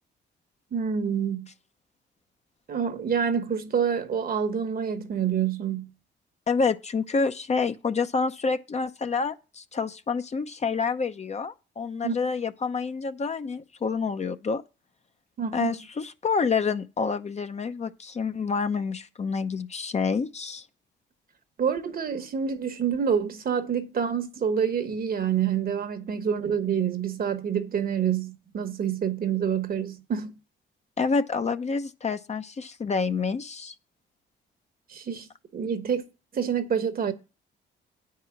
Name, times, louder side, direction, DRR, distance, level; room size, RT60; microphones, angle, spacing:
voice 1, 0.7-1.5 2.7-5.9 12.0-12.2 15.4-15.7 21.6-30.3 34.9-35.3 35.5-36.0 36.3-37.1, right 7 dB, 50° right, 1.1 m, -27 dB
voice 2, 6.5-14.6 15.5-20.6 31.0-33.7, left 5 dB, 35° left, 0.7 m, -28 dB
9.1 x 4.9 x 7.0 m
cardioid pair, 90°, 20 cm